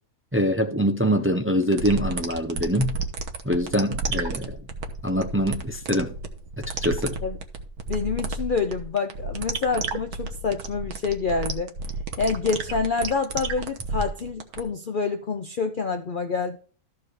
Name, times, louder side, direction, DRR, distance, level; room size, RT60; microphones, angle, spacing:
voice 1, 0.3-2.9 3.4-4.6 5.0-6.1 6.8-7.2, equal, 10° right, 0.8 m, -24 dB
sound 1, 1.6-14.6, right 3 dB, 90° right, 1.7 m, -31 dB
voice 2, 7.9-11.7 12.2-16.6, left 4 dB, 50° left, 0.6 m, -27 dB
13.5 x 4.8 x 4.8 m
omnidirectional pair, 1.6 m